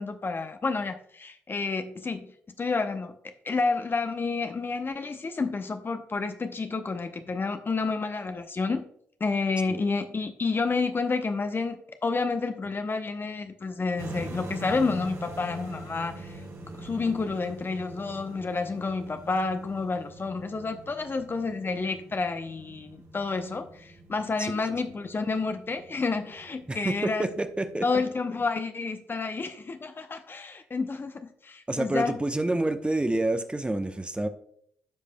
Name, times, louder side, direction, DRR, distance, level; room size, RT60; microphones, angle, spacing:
voice 1, 0.0-3.2 3.4-8.9 9.2-16.4 16.7-27.3 27.8-32.2, left 4 dB, 30° left, 7 dB, 0.7 m, -30 dB
sound 1, 14.0-28.0, right 1 dB, 45° right, 1.7 m, -44 dB
voice 2, 26.7-27.8 31.7-34.3, right 2 dB, 15° right, 8 dB, 0.8 m, -28 dB
14.5 x 5.1 x 2.2 m, 0.66 s
figure-of-eight pair, 40°, 7 cm